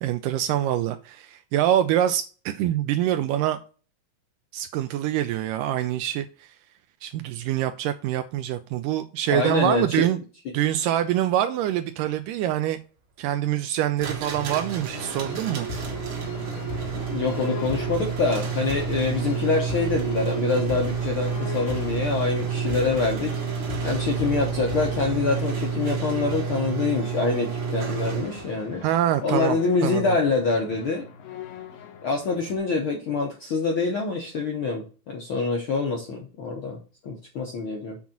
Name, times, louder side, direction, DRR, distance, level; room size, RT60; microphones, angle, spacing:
voice 1, 0.0-3.6 4.5-6.5 7.0-10.2 10.5-12.8 13.2-15.7 28.8-29.6 29.8-30.0, right 12 dB, 85° right, 2.1 m, -25 dB
voice 2, 9.3-10.1 16.9-23.4 23.8-28.8 29.2-31.1 32.0-38.0, left 4 dB, 70° left, 1.2 m, -26 dB
sound 1, 14.0-28.7, right 7 dB, 50° right, 1.7 m, -29 dB
sound 2, 14.9-32.6, left 7 dB, 85° left, 3.1 m, -38 dB
7.2 x 3.9 x 5.8 m
omnidirectional pair, 3.9 m